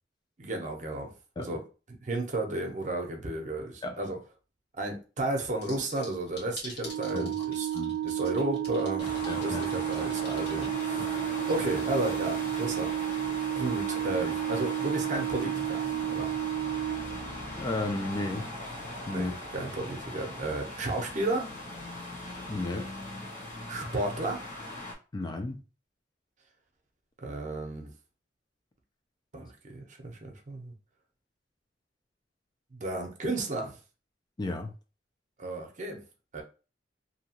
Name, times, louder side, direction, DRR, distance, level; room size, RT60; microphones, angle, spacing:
voice 1, 0.4-1.6 2.0-4.2 4.8-7.7 8.0-13.3 13.6-16.3 19.1-21.5 23.7-24.4 27.2-27.9 29.3-30.7 32.7-33.8 35.4-36.0 36.3-36.4, right 2 dB, 45° right, 0.7 m, -33 dB
sound 1, 5.6-11.2, left 2 dB, 65° left, 1.4 m, -45 dB
Organ, 6.8-17.6, right 12 dB, 75° right, 0.4 m, -32 dB
sound 2, 9.0-24.9, left 1 dB, 45° left, 1.0 m, -39 dB
voice 2, 9.3-9.7 11.0-11.1 17.6-18.5 19.1-19.3 22.5-22.9 25.1-25.6 34.4-34.7, left 2 dB, 25° left, 0.3 m, -33 dB
2.8 x 2.3 x 2.8 m
head